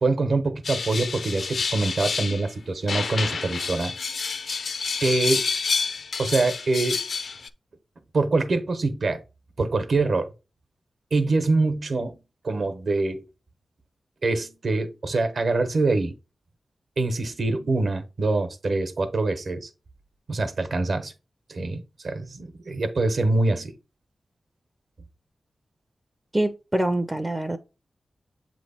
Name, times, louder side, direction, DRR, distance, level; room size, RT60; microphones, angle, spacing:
voice 1, 0.0-3.9 5.0-5.4 6.2-7.0 8.1-9.2 9.6-10.3 11.1-12.2 12.4-13.2 14.2-16.2 17.0-19.7 20.3-21.1 21.5-23.7, right 3 dB, 60° right, 1.0 m, -24 dB
sound 1, 0.6-2.5 2.9-7.5, left 5 dB, 65° left, 0.4 m, -29 dB
voice 2, 26.3-27.6, right 1 dB, 15° right, 0.4 m, -25 dB
8.0 x 3.0 x 4.2 m
wide cardioid pair, 120°, 0 cm